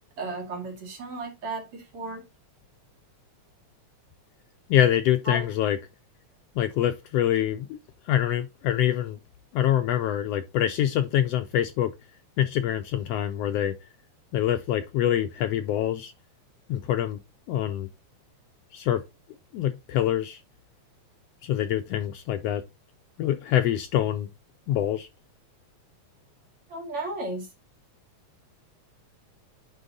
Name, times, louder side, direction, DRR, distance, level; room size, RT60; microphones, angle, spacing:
voice 1, 0.2-2.2 5.3-5.4 26.7-27.5, right 2 dB, 50° right, 2.9 m, -34 dB
voice 2, 4.7-5.8 6.5-7.8 8.0-9.2 9.5-11.9 12.4-13.7 14.3-16.1 16.7-17.2 17.5-17.9 18.7-19.0 19.5-20.4 21.4-22.6 23.2-24.3 24.7-25.1, left 11 dB, 80° left, 1.5 m, -25 dB
9.2 x 3.6 x 3.9 m
omnidirectional pair, 3.4 m